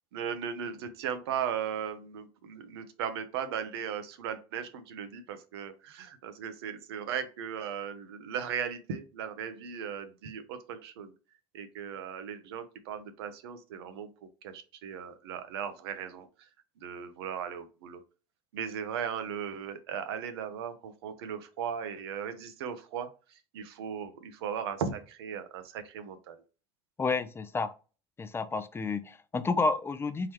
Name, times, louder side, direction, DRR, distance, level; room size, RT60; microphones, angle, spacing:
voice 1, 0.1-11.1 11.5-14.1 14.4-16.3 16.8-18.0 18.5-23.1 23.5-26.4, right 8 dB, 85° right, 0.7 m, -37 dB
voice 2, 27.0-27.7 28.2-30.3, left 3 dB, 20° left, 0.4 m, -30 dB
3.8 x 3.1 x 3.0 m
supercardioid pair, 95°, 13 cm